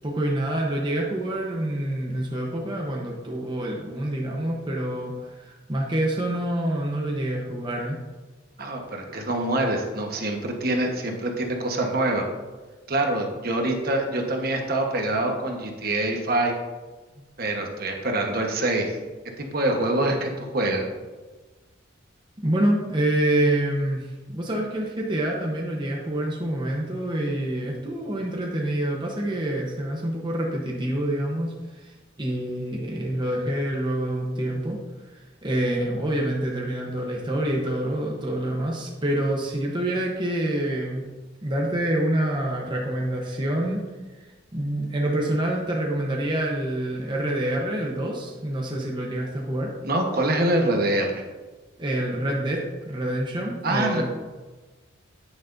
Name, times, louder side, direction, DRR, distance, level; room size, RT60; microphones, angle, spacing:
voice 1, 0.0-8.0 17.2-17.3 22.4-34.8 35.0-41.1 41.4-43.8 44.1-49.7 51.8-54.0, right 1 dB, 25° right, -2 dB, 0.9 m, -27 dB
voice 2, 8.6-12.2 12.9-16.5 17.4-19.0 19.4-20.9 49.8-51.2 53.6-54.0, right 1 dB, 50° right, 2 dB, 1.2 m, -25 dB
9.4 x 9.3 x 2.6 m, 1.3 s
head